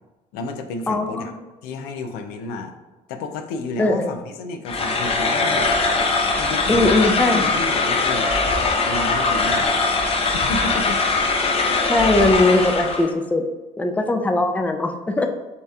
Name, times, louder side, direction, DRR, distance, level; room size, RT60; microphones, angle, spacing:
voice 1, 0.3-1.3 1.6-2.7 3.1-5.7 6.4-8.3 8.8-9.9 10.2-11.0 11.6-11.8, left 3 dB, 80° left, 7 dB, 0.5 m, -31 dB
voice 2, 0.9-1.3 3.8-4.1 6.7-7.4 11.9-13.5 13.8-15.3, left 2 dB, 10° left, 5 dB, 0.4 m, -20 dB
sound 1, 4.7-13.1, left 3 dB, 40° left, 0.7 m, -21 dB
6.6 x 2.8 x 2.4 m, 1.1 s
supercardioid pair, 90°, 15 cm